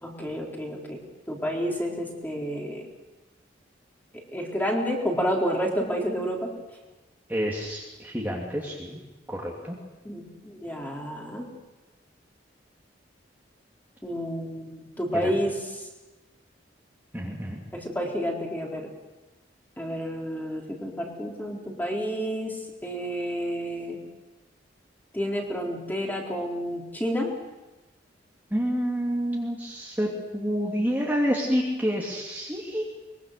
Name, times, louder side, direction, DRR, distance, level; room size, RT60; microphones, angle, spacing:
voice 1, 0.0-1.0 1.3-2.8 4.3-6.5 10.0-11.4 14.0-15.5 17.7-18.9 19.8-22.5 22.8-24.0 25.1-27.3, equal, 10° left, -1 dB, 4.0 m, -30 dB
voice 2, 7.3-9.0 9.3-9.8 15.2-15.4 17.1-17.6 28.5-32.8, equal, 10° right, -3 dB, 2.8 m, -28 dB
23.5 x 23.0 x 6.7 m, 1.1 s
head